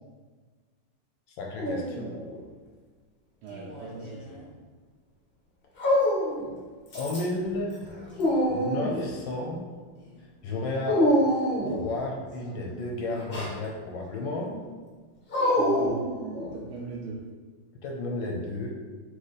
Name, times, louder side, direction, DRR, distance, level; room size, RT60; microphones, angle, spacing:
voice 1, 1.4-2.1 6.9-7.8 8.5-9.7 10.4-11.1 11.8-14.6 17.8-18.7, left 2 dB, 75° left, 0 dB, 1.3 m, -32 dB
Dog, 1.6-2.4 3.5-4.3 5.8-6.5 6.9-7.4 7.8-9.1 10.8-11.9 13.1-13.6 15.3-16.6, equal, 60° left, 0.6 m, -26 dB
voice 2, 3.4-4.5 15.6-16.1 16.5-17.2, right 3 dB, 80° right, -5 dB, 1.5 m, -39 dB
4.5 x 2.5 x 3.9 m, 1.4 s
omnidirectional pair, 2.3 m